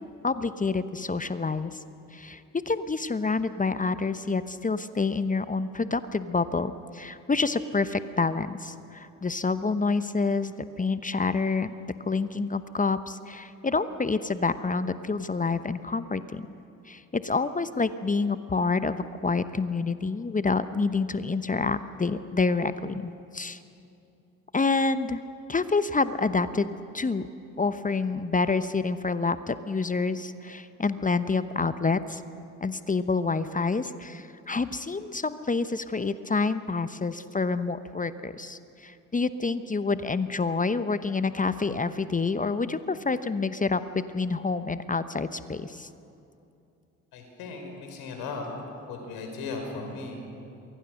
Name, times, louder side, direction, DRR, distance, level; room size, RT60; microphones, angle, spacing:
voice 1, 0.0-1.8 2.1-11.7 12.0-16.5 16.9-23.6 24.5-25.2 25.5-27.3 27.6-32.2 32.6-45.9, left 4 dB, 20° left, 13 dB, 1.0 m, -28 dB
voice 2, 47.1-48.5 48.9-50.2, left 4 dB, 65° left, 3 dB, 5.6 m, -37 dB
28.0 x 22.5 x 6.6 m, 2.7 s
hypercardioid pair, 50°, 40 cm